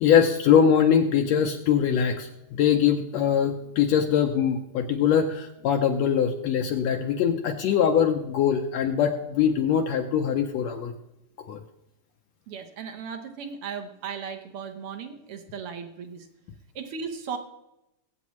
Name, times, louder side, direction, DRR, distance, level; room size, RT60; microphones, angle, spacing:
voice 1, 0.0-10.9 11.5-11.6, left 8 dB, 75° left, 3 dB, 1.8 m, -22 dB
voice 2, 12.5-16.3 16.7-17.4, right 6 dB, 65° right, 5 dB, 1.5 m, -36 dB
23.0 x 8.2 x 3.1 m, 0.90 s
omnidirectional pair, 3.4 m